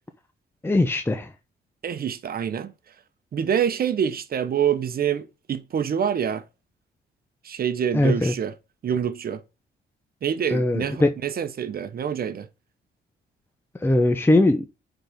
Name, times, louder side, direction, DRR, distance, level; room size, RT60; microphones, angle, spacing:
voice 1, 0.6-1.3 7.9-8.3 10.5-11.1 13.8-14.7, left 2 dB, 10° left, 0.7 m, -20 dB
voice 2, 1.8-2.7 3.3-6.4 7.4-8.5 8.8-9.4 10.2-12.5, right 8 dB, 50° right, 0.9 m, -26 dB
8.5 x 4.0 x 3.6 m
cardioid pair, 90°, 20 cm